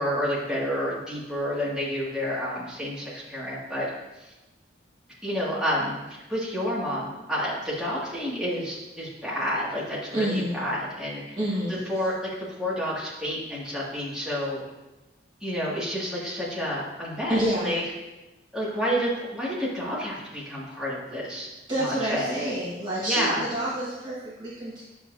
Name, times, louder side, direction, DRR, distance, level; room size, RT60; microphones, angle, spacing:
voice 1, 0.0-3.9 4.2-4.3 5.2-6.0 6.3-11.4 11.7-14.6 15.4-17.8 18.5-21.5 21.7-22.4 23.0-23.4, equal, 5° right, -9 dB, 2.1 m, -29 dB
voice 2, 10.1-10.6 11.4-11.8 17.3-17.7 21.7-24.8, right 1 dB, 25° right, -9 dB, 1.6 m, -28 dB
10.5 x 6.7 x 2.7 m, 1.1 s
head